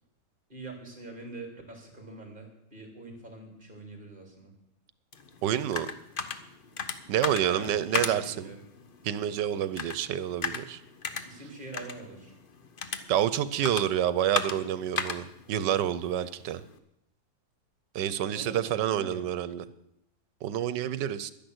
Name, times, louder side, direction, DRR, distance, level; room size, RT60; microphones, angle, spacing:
voice 1, 0.5-4.5 7.5-8.6 11.2-12.4 18.3-19.3, right 2 dB, 30° right, 3 dB, 3.4 m, -44 dB
sound 1, 5.1-16.8, left 5 dB, 40° left, 0.8 m, -37 dB
voice 2, 5.4-5.9 7.1-8.5 9.0-10.8 13.1-16.6 17.9-19.6 20.4-21.3, right 10 dB, 85° right, 15 dB, 1.4 m, -28 dB
12.0 x 10.5 x 8.0 m, 0.80 s
omnidirectional pair, 1.8 m